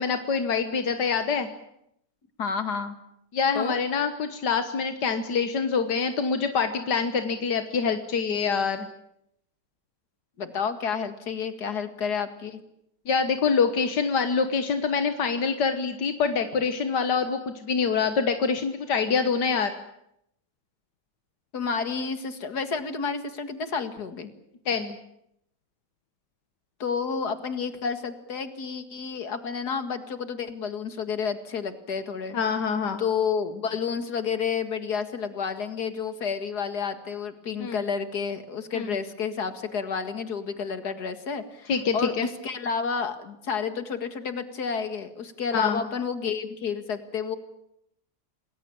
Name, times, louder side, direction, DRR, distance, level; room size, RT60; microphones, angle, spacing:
voice 1, 0.0-1.5 3.3-8.9 13.1-19.7 24.7-25.0 32.3-33.0 37.6-37.8 38.7-38.9 41.7-42.3 45.5-45.8, left 5 dB, 85° left, 8 dB, 1.9 m, -25 dB
voice 2, 2.4-3.0 3.5-3.8 10.4-12.6 21.5-24.3 26.8-32.4 33.0-47.4, left 6 dB, 70° left, 9 dB, 2.5 m, -30 dB
27.5 x 20.0 x 8.7 m, 0.79 s
omnidirectional pair, 1.8 m